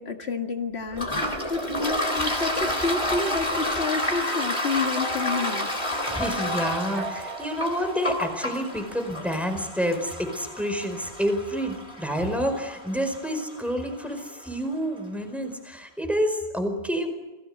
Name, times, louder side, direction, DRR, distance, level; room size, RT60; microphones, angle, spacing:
voice 1, 0.0-5.7, left 4 dB, 85° left, 4 dB, 2.3 m, -29 dB
Toilet flush, 0.9-14.3, left 1 dB, 30° left, 4.0 m, -30 dB
sound 1, 5.0-9.2, right 1 dB, 65° left, 3.4 m, -39 dB
voice 2, 6.1-17.1, equal, ahead, 6 dB, 4.8 m, -28 dB
29.0 x 19.5 x 8.0 m, 1.1 s
omnidirectional pair, 1.1 m